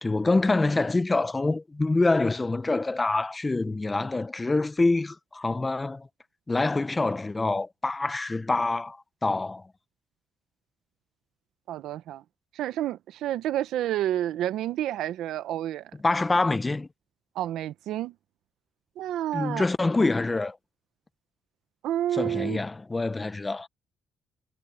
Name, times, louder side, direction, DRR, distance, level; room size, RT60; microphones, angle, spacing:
voice 1, 0.0-6.1 6.5-9.7 16.0-16.9 19.3-20.6 22.1-23.7, left 3 dB, 20° left, 0.8 m, -26 dB
voice 2, 11.7-12.2 12.5-15.9 17.3-18.1 19.0-19.6 21.8-22.6, right 12 dB, 85° right, 0.9 m, -29 dB
cardioid pair, 90°, 0 cm